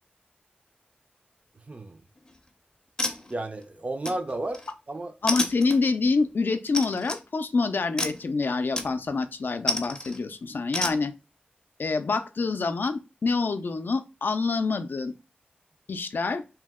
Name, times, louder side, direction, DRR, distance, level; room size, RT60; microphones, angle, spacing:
voice 1, 1.7-2.0 3.3-5.1, right 2 dB, 40° right, 0.4 m, -33 dB
sound 1, 2.2-2.5 3.0-3.6 4.1-4.7 5.3-6.1 6.7-7.2 8.0-8.3 8.8-9.2 9.7-10.2 10.7-11.0, left 1 dB, 20° left, 0.5 m, -30 dB
voice 2, 5.2-11.1 11.8-15.1 15.9-16.4, left 4 dB, 75° left, 0.3 m, -26 dB
2.8 x 2.0 x 3.5 m
wide cardioid pair, 75°, 3 cm